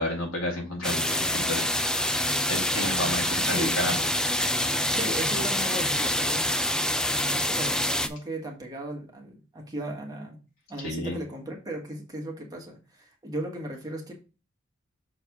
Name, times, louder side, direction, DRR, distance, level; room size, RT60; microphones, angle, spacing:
voice 1, 0.0-1.7 2.5-4.0 10.8-11.2, left 1 dB, 90° left, -1 dB, 2.5 m, -31 dB
sound 1, 0.8-8.1, left 1 dB, 5° left, 0.3 m, -26 dB
voice 2, 3.4-3.8 4.9-6.5 7.3-10.4 10.7-14.1, right 1 dB, 20° right, 0 dB, 1.4 m, -36 dB
6.4 x 3.3 x 4.6 m, 0.32 s
head